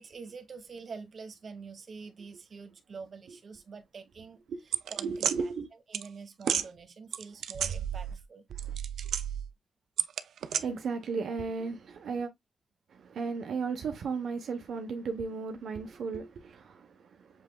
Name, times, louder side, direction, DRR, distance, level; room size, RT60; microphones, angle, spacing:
voice 1, 0.0-4.4 4.9-5.5 5.9-8.4, right 5 dB, 40° right, 1.1 m, -46 dB
sound 1, 4.7-5.3 5.9-6.1 6.4-6.7 7.1-8.2 8.5-9.5 10.0-10.6, right 8 dB, 90° right, 0.5 m, -31 dB
voice 2, 5.0-5.7 8.5-8.8 10.4-12.3 12.9-17.4, right 5 dB, 70° right, 0.8 m, -35 dB
7.3 x 3.2 x 2.2 m
wide cardioid pair, 175°, 0 cm